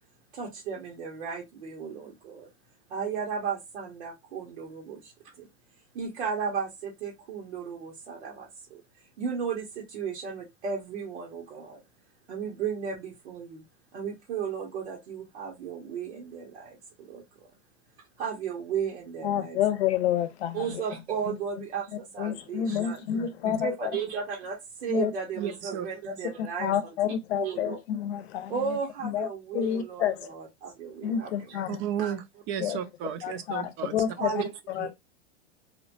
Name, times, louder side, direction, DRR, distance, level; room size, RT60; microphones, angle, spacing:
voice 1, 0.3-2.5 2.9-5.1 5.4-5.5 5.9-8.8 9.2-11.8 12.3-13.6 13.9-17.5 18.2-19.6 20.5-23.0 23.4-27.8 28.5-31.7 32.0-32.1 34.2-34.5 34.8-34.9, right 6 dB, 85° right, 1.0 m, -35 dB
voice 2, 19.2-20.7 21.3-21.4 22.2-23.7 24.9-25.1 26.4-28.8 29.0-29.3 29.5-30.3 31.0-31.8 32.6-32.8 33.2-34.3 34.7-34.9, left 10 dB, 70° left, 0.7 m, -29 dB
voice 3, 23.1-23.5 25.4-25.9 31.7-34.0, right 9 dB, 35° right, 0.5 m, -34 dB
3.1 x 2.1 x 2.5 m
hypercardioid pair, 125°, 33 cm